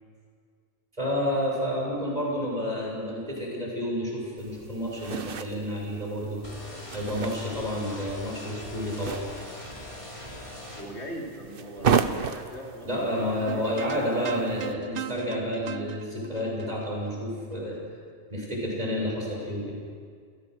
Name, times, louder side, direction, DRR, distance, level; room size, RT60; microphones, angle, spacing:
voice 1, 1.0-6.4 6.9-9.5 12.9-17.8 18.3-19.7, equal, 35° right, -3 dB, 6.8 m, -30 dB
sound 1, 4.4-14.7, right 6 dB, 55° right, 1.1 m, -34 dB
sound 2, 6.4-10.8, left 1 dB, 30° left, 3.2 m, -41 dB
voice 2, 10.7-13.7, equal, 85° left, -1 dB, 3.6 m, -40 dB
sound 3, 13.5-17.8, right 10 dB, 85° right, 1.0 m, -39 dB
28.0 x 16.5 x 6.6 m, 2.1 s
omnidirectional pair, 1.1 m